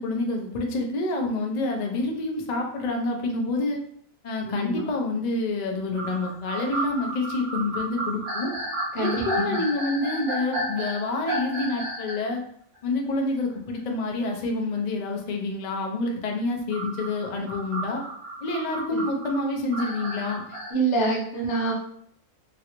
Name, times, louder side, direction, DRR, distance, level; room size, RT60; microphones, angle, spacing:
voice 1, 0.0-3.8 4.2-8.5 9.0-12.4 12.8-18.0 18.4-20.4, left 2 dB, 75° left, 1 dB, 0.3 m, -28 dB
voice 2, 4.5-4.8 8.9-9.6 18.9-19.0 20.7-21.7, right 2 dB, 60° left, -2 dB, 1.1 m, -26 dB
sound 1, 5.9-12.3 12.7-12.8 14.3-14.4 16.7-20.7, right 1 dB, 65° right, 1.2 m, -32 dB
3.1 x 2.4 x 2.9 m, 0.65 s
omnidirectional pair, 1.4 m